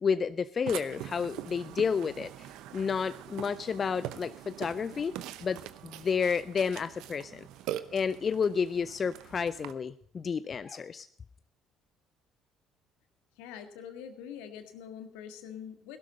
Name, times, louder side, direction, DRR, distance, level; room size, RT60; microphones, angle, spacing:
voice 1, 0.0-5.2 5.4-7.4 7.9-11.1, left 6 dB, 40° left, 14 dB, 0.5 m, -31 dB
Burping eructation, 0.7-9.7, right 12 dB, 70° right, 0.8 m, -43 dB
voice 2, 13.4-16.0, left 8 dB, 75° left, 7 dB, 1.7 m, -44 dB
16.0 x 12.5 x 4.0 m, 0.66 s
hypercardioid pair, 55°, 0 cm